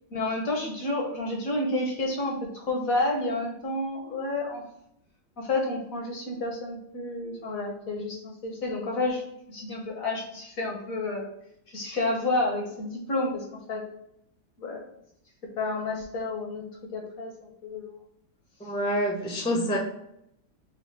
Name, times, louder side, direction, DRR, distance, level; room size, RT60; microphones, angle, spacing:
voice 1, 0.1-4.6 5.4-11.3 11.7-13.9 14.6-14.8 15.6-17.9, left 2 dB, 60° left, 0 dB, 1.0 m, -30 dB
voice 2, 18.6-19.8, equal, 5° left, -1 dB, 0.3 m, -27 dB
4.0 x 2.1 x 4.4 m, 0.77 s
omnidirectional pair, 2.1 m